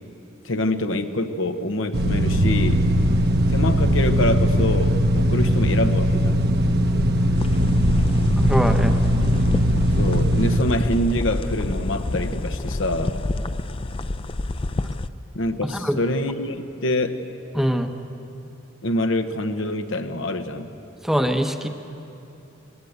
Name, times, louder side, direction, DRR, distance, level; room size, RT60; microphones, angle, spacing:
voice 1, 0.4-2.8 3.5-6.4 10.0-13.2 15.3-17.3 18.8-20.7, left 1 dB, 75° left, 7 dB, 1.1 m, -25 dB
sound 1, 1.9-10.6, equal, 55° right, 1.1 m, -20 dB
sound 2, 7.4-15.1, left 2 dB, 30° left, 0.5 m, -28 dB
voice 2, 8.4-9.0 15.8-16.0 17.5-17.9 21.0-21.7, equal, ahead, 5 dB, 0.9 m, -22 dB
21.5 x 19.0 x 8.1 m, 2.8 s
head